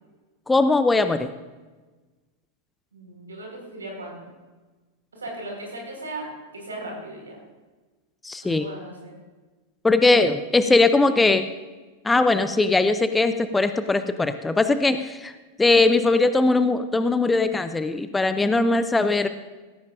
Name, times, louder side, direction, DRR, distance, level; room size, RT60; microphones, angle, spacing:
voice 1, 0.5-1.3 8.2-8.7 9.8-11.5 12.0-15.3 15.6-19.3, left 3 dB, 10° left, 11 dB, 0.6 m, -20 dB
voice 2, 2.9-4.3 5.1-7.4 8.4-9.2, right 1 dB, 75° right, 0 dB, 4.6 m, -37 dB
16.5 x 14.5 x 2.5 m, 1.3 s
figure-of-eight pair, 90°, 0 cm